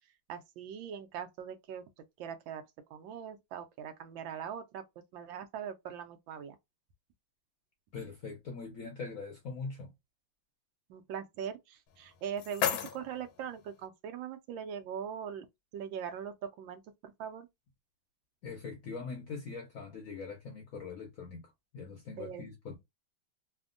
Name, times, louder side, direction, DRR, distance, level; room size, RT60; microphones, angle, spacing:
voice 1, 0.3-1.8 2.2-2.6 2.9-4.8 5.1-6.6 10.9-15.5 15.7-17.5 22.2-22.4, right 8 dB, 75° right, 1.3 m, -41 dB
voice 2, 7.9-9.9 18.4-22.8, left 4 dB, 65° left, 0.8 m, -42 dB
sound 1, 11.9-13.9, left 9 dB, 80° left, 1.4 m, -36 dB
3.4 x 2.1 x 2.4 m
omnidirectional pair, 2.2 m